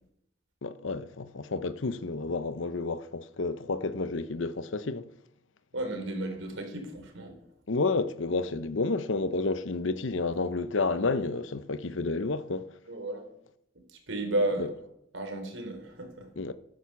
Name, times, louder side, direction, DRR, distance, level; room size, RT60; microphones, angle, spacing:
voice 1, 0.6-5.1 7.7-12.6 14.6-14.7 16.4-16.5, left 3 dB, 70° left, 0.8 m, -30 dB
voice 2, 5.7-7.4 12.9-13.2 13.9-14.7 15.1-16.3, right 1 dB, 75° right, 4.3 m, -33 dB
14.0 x 10.5 x 7.1 m
head